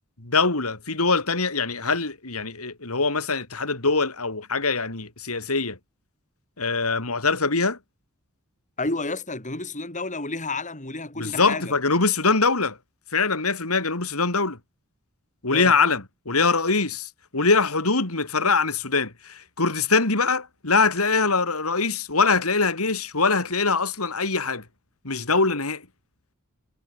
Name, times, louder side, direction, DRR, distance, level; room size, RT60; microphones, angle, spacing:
voice 1, 0.2-5.8 6.6-7.8 11.2-12.8 13.1-14.6 15.4-24.6 25.0-25.8, left 4 dB, 85° left, 3.8 m, -23 dB
voice 2, 8.8-11.7 15.5-15.7, left 3 dB, 35° left, 6.1 m, -31 dB
head